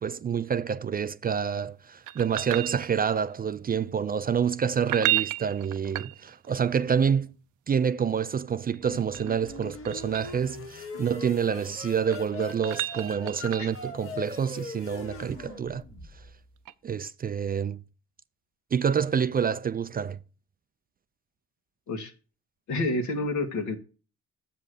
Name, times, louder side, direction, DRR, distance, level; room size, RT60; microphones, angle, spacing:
voice 1, 0.0-7.3 7.7-15.8 16.8-17.8 18.7-20.2, right 7 dB, 30° right, 0.4 m, -27 dB
sound 1, 2.1-3.3 4.8-6.6 8.7-10.4 11.8-13.9 16.6-16.7, right 16 dB, 80° right, 0.6 m, -33 dB
sound 2, 8.8-16.5, left 3 dB, 50° left, 1.9 m, -41 dB
voice 2, 22.7-23.8, left 2 dB, 70° left, 1.8 m, -28 dB
7.4 x 5.4 x 6.6 m
cardioid pair, 90°, 30 cm